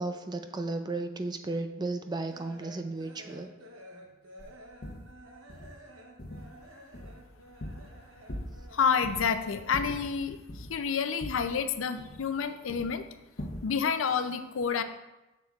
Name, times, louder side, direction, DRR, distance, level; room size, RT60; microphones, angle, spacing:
voice 1, 0.0-3.5, right 2 dB, 20° right, 7 dB, 0.4 m, -34 dB
sound 1, 1.4-10.2 10.5-11.7 12.0-13.3 13.6-14.3, equal, 75° right, 1.0 m, -52 dB
sound 2, 4.4-4.5 4.8-5.1 5.5-5.8 6.2-6.6 6.9-8.0 8.3-8.7 9.0-9.3 9.7-10.8 11.2-12.4 12.7-13.0 13.4-13.7, left 1 dB, 50° left, 0.9 m, -41 dB
voice 2, 8.7-13.0 13.6-14.8, left 6 dB, 75° left, 10 dB, 0.5 m, -29 dB
7.9 x 6.7 x 2.4 m, 1.0 s
head